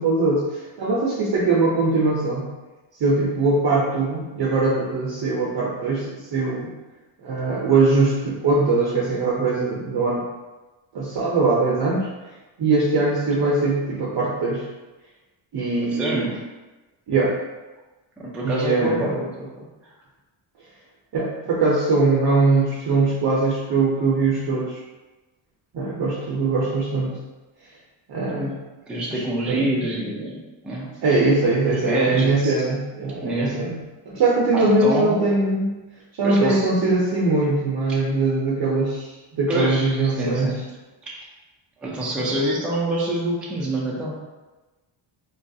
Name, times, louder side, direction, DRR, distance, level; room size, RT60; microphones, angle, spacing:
voice 1, 0.0-2.5 3.0-6.7 7.2-10.2 10.9-12.1 12.6-14.7 15.5-16.3 17.1-17.3 18.4-19.1 21.1-24.8 25.7-27.1 28.1-28.5 29.1-29.6 31.0-33.8 34.1-35.7 36.1-40.5 42.3-42.4, right 3 dB, 50° right, -5 dB, 0.6 m, -21 dB
voice 2, 15.8-16.4 18.2-19.7 28.2-30.9 31.6-32.5 33.2-33.5 34.5-35.2 36.2-36.7 39.5-40.6 41.1-41.2 41.8-44.1, right 1 dB, ahead, -4 dB, 0.4 m, -26 dB
3.9 x 2.3 x 2.6 m, 1.2 s
cardioid pair, 130°, 50 cm